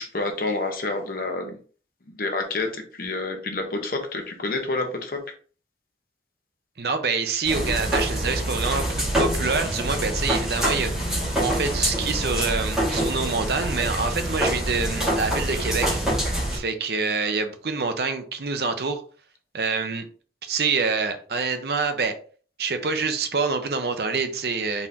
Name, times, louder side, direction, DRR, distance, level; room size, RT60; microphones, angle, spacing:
voice 1, 0.0-1.6 2.1-5.2, left 2 dB, 55° left, 0.9 m, -28 dB
voice 2, 6.8-19.0 19.5-20.1 20.4-22.2 22.6-24.9, right 4 dB, 65° right, 0.6 m, -26 dB
sound 1, 7.4-16.6, right 1 dB, 5° right, 1.9 m, -26 dB
4.1 x 3.7 x 2.8 m
head